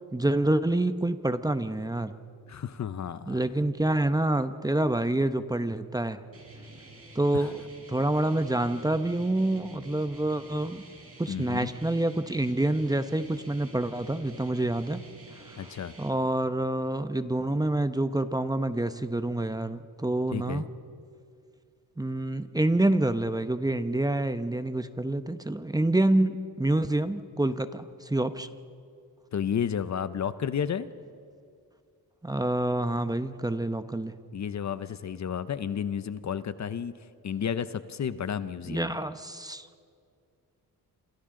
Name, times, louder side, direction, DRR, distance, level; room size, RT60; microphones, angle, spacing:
voice 1, 0.1-2.1 3.3-6.2 7.1-7.6 7.9-10.8 11.2-15.0 15.4-15.6 16.0-20.6 22.0-28.5 32.2-34.1 38.7-39.7, right 1 dB, 10° right, 10 dB, 0.8 m, -27 dB
voice 2, 2.5-3.4 7.3-7.5 11.3-11.7 15.6-15.9 20.3-20.7 29.3-30.9 34.3-39.0, left 8 dB, 50° left, 13 dB, 0.8 m, -32 dB
sound 1, 6.3-16.1, right 2 dB, 40° right, 5.3 m, -49 dB
27.5 x 27.0 x 3.8 m, 2.3 s
cardioid pair, 85°, 36 cm